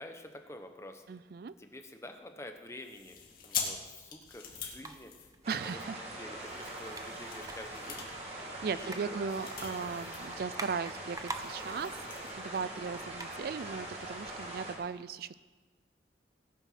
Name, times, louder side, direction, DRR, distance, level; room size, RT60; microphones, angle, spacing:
voice 1, 0.0-1.0 1.6-5.8 6.1-8.1 8.7-9.2 10.2-10.3, left 1 dB, 15° left, 5 dB, 1.1 m, -48 dB
voice 2, 1.1-1.5 5.5-6.0 8.3-11.9 12.4-15.4, right 5 dB, 55° right, 16 dB, 0.4 m, -37 dB
sound 1, 2.8-5.8 6.4-10.3 10.6-10.7 11.1-12.3, left 6 dB, 50° left, 2.3 m, -43 dB
sound 2, 4.3-14.3, right 3 dB, 20° right, 0.8 m, -49 dB
sound 3, 5.4-14.7, right 1 dB, 35° right, 2.5 m, -43 dB
18.5 x 9.1 x 5.9 m, 1.3 s
head